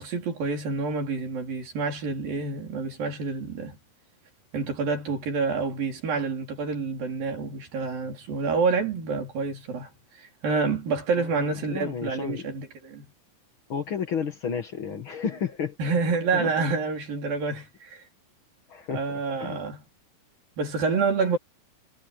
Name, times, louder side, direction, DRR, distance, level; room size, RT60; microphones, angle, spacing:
voice 1, 0.0-3.8 4.5-9.9 10.2-13.1 15.8-18.0 18.9-19.8 20.6-21.4, right 4 dB, 60° right, 5.8 m, -28 dB
voice 2, 11.2-12.5 13.7-15.8 16.3-16.5 18.7-19.0 19.4-19.6, left 6 dB, 60° left, 1.3 m, -32 dB
omnidirectional pair, 4.8 m